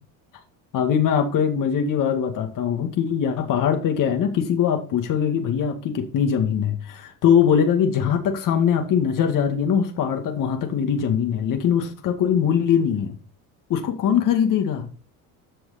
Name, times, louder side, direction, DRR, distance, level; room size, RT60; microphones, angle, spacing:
voice 1, 0.7-13.1 13.7-14.9, left 8 dB, 60° left, 5 dB, 2.2 m, -22 dB
13.0 x 6.2 x 4.3 m, 0.40 s
cardioid pair, 110°, 37 cm